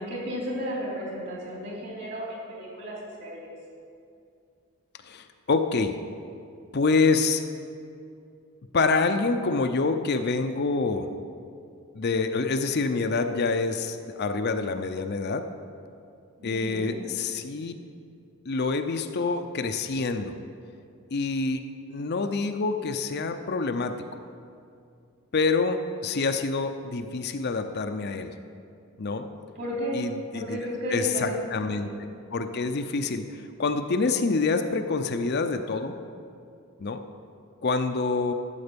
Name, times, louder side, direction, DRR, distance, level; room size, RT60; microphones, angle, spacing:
voice 1, 0.0-3.5 16.4-17.0 29.5-30.0 30.3-31.4 31.7-31.9, equal, 50° right, -4 dB, 3.2 m, -33 dB
voice 2, 5.1-5.9 6.7-7.4 8.7-11.1 11.9-15.5 16.4-17.7 18.5-20.4 21.1-21.6 21.9-24.0 25.3-28.3 29.0-29.3 29.9-30.6 30.9-31.9 32.3-36.0 36.8-37.0 37.6-38.3, left 4 dB, 50° left, 7 dB, 0.5 m, -26 dB
12.0 x 7.7 x 5.2 m, 2.4 s
head